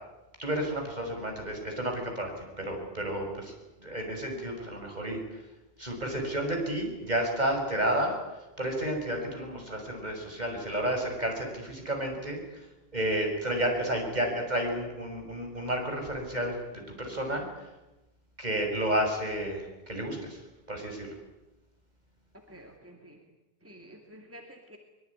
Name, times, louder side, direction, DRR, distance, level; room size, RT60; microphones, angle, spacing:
voice 1, 0.4-3.5 3.8-5.2 5.8-8.2 8.6-12.7 12.9-17.5 18.4-20.4 20.7-21.1, right 1 dB, 45° right, 3 dB, 6.5 m, -31 dB
voice 2, 22.5-23.2 23.6-24.8, equal, 15° right, 3 dB, 2.5 m, -50 dB
23.5 x 22.5 x 9.8 m, 1.0 s
omnidirectional pair, 1.0 m